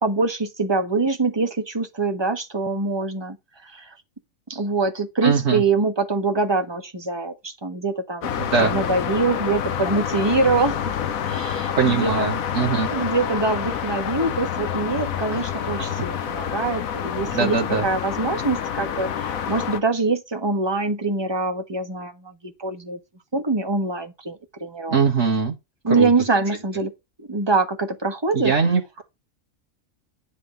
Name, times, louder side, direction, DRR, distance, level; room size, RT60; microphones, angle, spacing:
voice 1, 0.0-3.4 3.6-3.9 4.5-8.3 8.6-10.9 11.3-12.1 12.9-23.0 23.3-25.0 25.8-26.9 27.2-28.5, right 3 dB, 20° right, 1.3 m, -24 dB
voice 2, 5.2-5.6 8.4-8.8 11.7-12.9 15.3-15.4 17.3-17.9 24.9-25.5 25.9-26.1 28.3-29.0, right 5 dB, 60° right, 1.7 m, -21 dB
sound 1, 8.2-19.8, left 8 dB, 85° left, 1.3 m, -28 dB
10.0 x 3.6 x 7.1 m
omnidirectional pair, 1.4 m